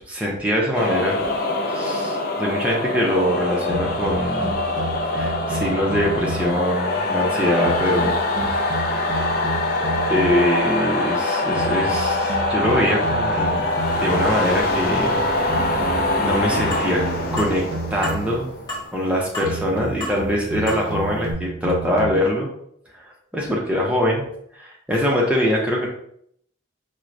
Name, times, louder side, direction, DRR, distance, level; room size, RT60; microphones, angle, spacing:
voice 1, 0.1-1.2 1.7-4.5 5.1-8.1 8.5-8.9 10.1-13.7 14.0-15.1 16.2-17.0 17.3-18.5 18.9-22.5 23.3-24.3 24.6-25.9, equal, 5° right, -3 dB, 0.6 m, -23 dB
sound 1, 0.7-19.3, left 2 dB, 50° left, 0.4 m, -24 dB
sound 2, 3.7-6.7 7.6-10.6 11.6-14.6 15.5-18.5 19.4-22.1, right 3 dB, 55° right, 0.5 m, -31 dB
sound 3, 16.7-16.9 17.4-17.5 18.0-18.2 18.7-18.9 19.3-19.7 20.0-20.2 20.7-20.8 21.3-21.4, left 1 dB, 20° left, 0.9 m, -30 dB
4.4 x 2.1 x 2.5 m, 0.69 s
head